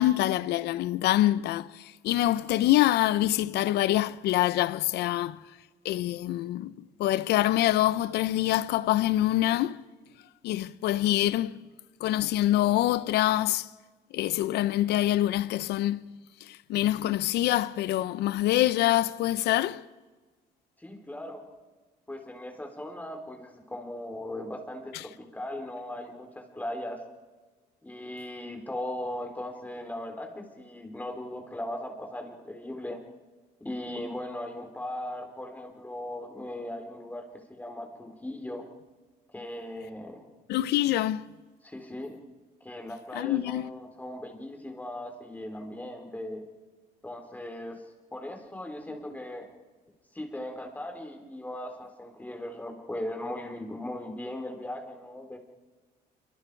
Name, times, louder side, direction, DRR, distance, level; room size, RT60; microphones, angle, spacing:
voice 1, 0.0-5.4 5.8-6.7 7.0-9.8 10.4-11.7 12.0-13.7 14.1-16.1 16.4-19.9 40.5-41.3 43.1-43.7, left 14 dB, 75° left, 0.8 m, -25 dB
voice 2, 20.8-21.4 22.1-27.0 27.8-33.0 33.6-37.2 37.5-38.7 39.3-40.2 41.6-42.1 42.6-46.4 47.0-47.8 48.1-49.5 50.1-55.4, left 1 dB, 10° left, 3.6 m, -38 dB
27.0 x 24.5 x 4.7 m
cardioid pair, 110°, 17 cm